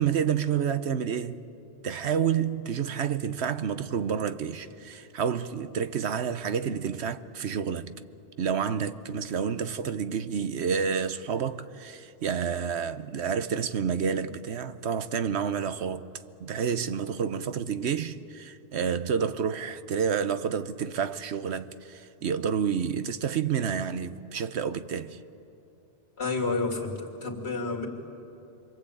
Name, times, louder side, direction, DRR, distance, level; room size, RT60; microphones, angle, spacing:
voice 1, 0.0-1.4 1.8-7.9 8.4-16.1 16.4-25.2, right 7 dB, 75° right, 1.1 m, -29 dB
voice 2, 26.2-27.9, left 3 dB, 65° left, 3.0 m, -30 dB
27.0 x 23.5 x 8.6 m
omnidirectional pair, 1.1 m